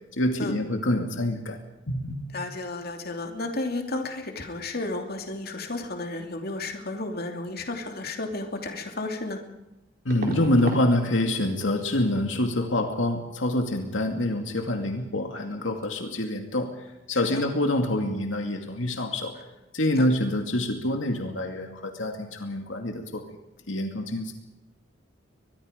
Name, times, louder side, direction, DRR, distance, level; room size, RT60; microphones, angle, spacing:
voice 1, 0.2-1.6 1.9-2.2 10.0-16.7 17.1-19.3 19.7-23.2 23.7-24.3, left 1 dB, 75° left, 4 dB, 2.4 m, -26 dB
voice 2, 2.3-9.4 17.1-17.4 20.0-20.1, left 2 dB, 55° left, 4 dB, 2.8 m, -33 dB
sound 1, 8.6-8.7 10.1-10.9 11.2-11.6 11.8-12.0 14.9-15.1 15.3-15.6 15.8-16.0, right 1 dB, 50° right, 4.4 m, -36 dB
23.5 x 21.5 x 5.2 m, 0.98 s
head